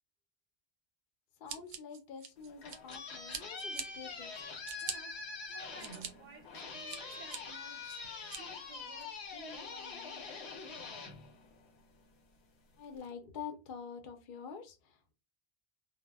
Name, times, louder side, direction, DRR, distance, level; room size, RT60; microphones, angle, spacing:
voice 1, 1.4-4.3 12.8-15.1, left 6 dB, 60° left, 0.7 m, -47 dB
Scissors, 1.5-3.0 3.3-3.9 4.3-5.0 5.5-6.1 6.5-7.4 7.9-8.4, right 7 dB, 90° right, 0.9 m, -43 dB
sound 1, 2.4-12.0, left 4 dB, 85° left, 1.0 m, -45 dB
voice 2, 4.8-8.1 8.4-10.9, right 3 dB, 55° right, 0.6 m, -55 dB
2.1 x 2.0 x 3.3 m
omnidirectional pair, 1.1 m